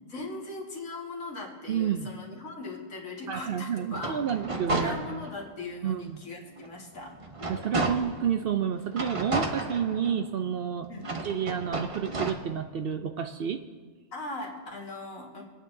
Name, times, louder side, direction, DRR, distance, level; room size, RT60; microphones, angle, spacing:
voice 1, 0.1-4.2 4.7-7.2 10.9-11.1 14.1-15.4, left 2 dB, 90° left, -1 dB, 2.3 m, -39 dB
voice 2, 1.7-2.1 3.3-5.0 5.8-6.2 7.5-10.9 11.2-13.6, right 8 dB, 60° right, 7 dB, 0.6 m, -30 dB
sound 1, 3.8-5.5 6.0-6.1 6.6-8.3 8.9-10.4 11.0-12.3, right 2 dB, 30° right, 0.8 m, -32 dB
25.5 x 9.2 x 2.7 m, 1.4 s
omnidirectional pair, 1.4 m